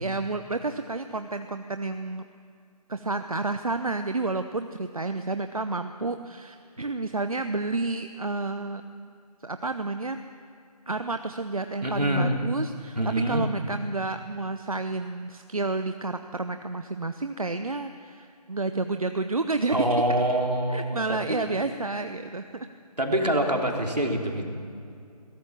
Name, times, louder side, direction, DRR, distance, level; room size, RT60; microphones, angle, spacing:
voice 1, 0.0-2.2 2.9-8.8 9.4-10.2 10.9-19.9 20.7-22.7, right 3 dB, 60° right, 8 dB, 0.8 m, -30 dB
voice 2, 11.8-12.4 12.9-13.5 19.7-21.4 23.0-24.4, right 1 dB, 80° right, 1 dB, 3.5 m, -25 dB
22.0 x 17.5 x 7.3 m, 2.4 s
figure-of-eight pair, 160°, 20 cm